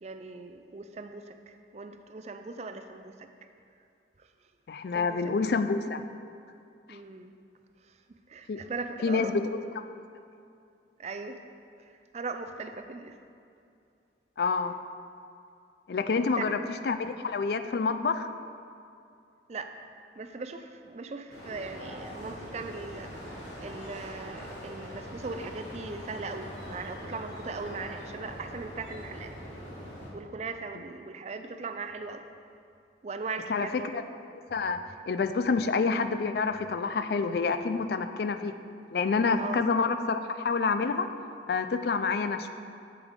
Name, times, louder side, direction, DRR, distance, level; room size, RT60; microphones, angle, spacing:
voice 1, 0.0-3.3 4.2-4.3 4.9-5.3 6.9-7.4 7.8-8.0 8.3-9.3 11.0-11.4 11.8-13.2 16.2-16.4 19.5-19.9 20.2-23.1 23.6-29.3 30.1-32.2 33.0-33.9 39.4-39.6, right 4 dB, 35° right, 7 dB, 0.4 m, -39 dB
voice 2, 4.7-6.0 6.9-7.0 8.5-8.6 9.0-9.4 14.4-14.7 15.9-16.6 16.8-18.3 33.5-34.0 34.5-34.8 35.1-38.5 38.9-41.1 41.5-42.5, left 4 dB, 60° left, 10 dB, 0.4 m, -28 dB
sound 1, 21.3-30.1, equal, 90° left, 2.1 m, -42 dB
8.2 x 7.9 x 3.7 m, 2.5 s
head